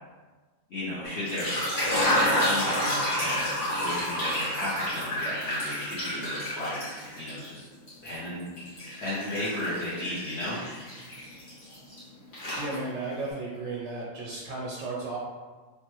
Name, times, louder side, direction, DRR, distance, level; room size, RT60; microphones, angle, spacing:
voice 1, 0.7-1.6 2.1-2.8 3.2-7.7 8.0-8.5 9.0-10.6, left 1 dB, 55° left, -11 dB, 0.9 m, -34 dB
sound 1, 1.1-7.5 7.9-12.0 12.3-13.1, left 1 dB, 70° left, 1.6 m, -30 dB
voice 2, 12.6-15.2, right 3 dB, 70° right, -4 dB, 0.9 m, -34 dB
3.2 x 2.2 x 2.9 m, 1.3 s
omnidirectional pair, 1.5 m